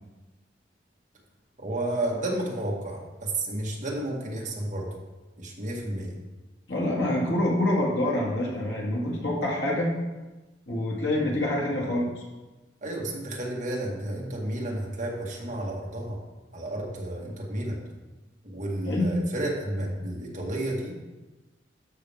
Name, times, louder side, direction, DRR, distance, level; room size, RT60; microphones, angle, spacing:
voice 1, 1.6-4.9 5.4-6.1 12.8-16.2 16.5-17.8 18.4-20.9, right 1 dB, 45° right, -2 dB, 1.8 m, -31 dB
voice 2, 6.7-9.9 10.7-12.1 18.8-19.1, left 1 dB, 75° left, -3 dB, 2.3 m, -26 dB
12.5 x 5.8 x 3.6 m, 1.1 s
head